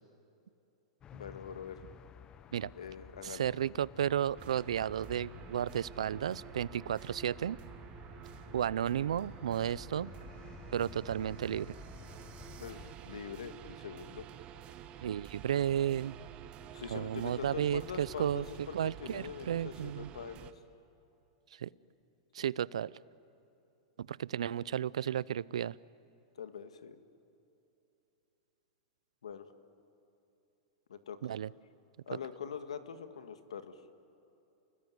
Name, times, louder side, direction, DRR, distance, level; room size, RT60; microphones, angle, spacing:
sound 1, 1.0-12.9, left 9 dB, 25° left, 0.8 m, -53 dB
voice 1, 1.1-1.8 2.7-3.5 12.6-14.3 16.7-20.6 22.4-22.5 26.4-27.0 29.2-29.5 30.9-31.3 32.1-33.8, left 7 dB, 90° left, 9 dB, 1.8 m, -44 dB
voice 2, 3.2-7.6 8.5-10.1 10.7-11.7 15.0-16.2 16.9-18.5 18.7-20.1 21.5-21.7 22.3-22.9 24.0-25.8 31.2-31.5, right 10 dB, 85° right, 22 dB, 0.5 m, -33 dB
sound 2, 4.3-20.5, right 11 dB, 35° right, 1.3 m, -50 dB
30.0 x 21.0 x 9.5 m, 2.9 s
hypercardioid pair, 125°, 3 cm